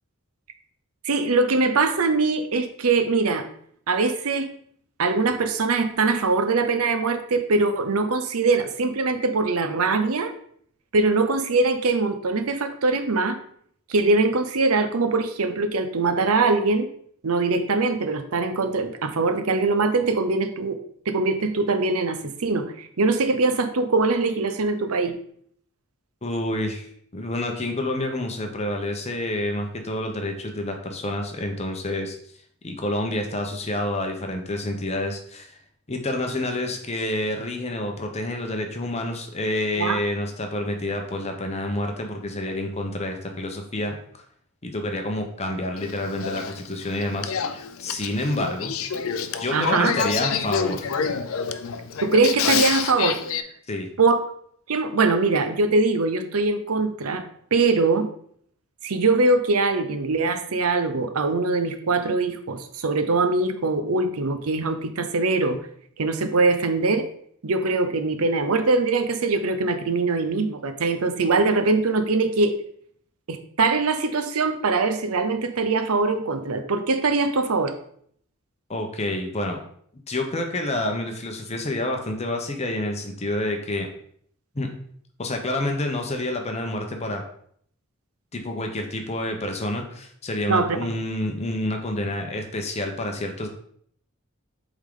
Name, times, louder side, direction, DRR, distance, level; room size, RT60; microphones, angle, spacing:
voice 1, 1.0-3.5 3.9-4.5 5.0-10.3 10.9-13.4 13.9-16.9 17.2-20.8 21.1-25.1 39.8-40.0 49.5-49.9 52.0-53.2 54.0-54.2 54.7-57.2 57.5-58.1 58.8-65.6 66.0-67.1 67.4-72.6 73.3-77.7 90.5-90.8, right 3 dB, 80° right, 9 dB, 0.7 m, -22 dB
voice 2, 26.2-26.9 27.1-32.2 32.6-35.6 35.9-44.2 44.6-48.7 49.4-50.9 53.7-53.9 78.7-79.6 80.1-83.9 84.5-84.7 85.2-87.2 88.3-93.5, left 1 dB, 30° left, 3 dB, 0.8 m, -28 dB
Male speech man speaking / Female speech woman speaking / Conversation, 45.8-53.4, left 6 dB, 70° left, 0.5 m, -28 dB
8.1 x 3.7 x 3.7 m, 0.64 s
head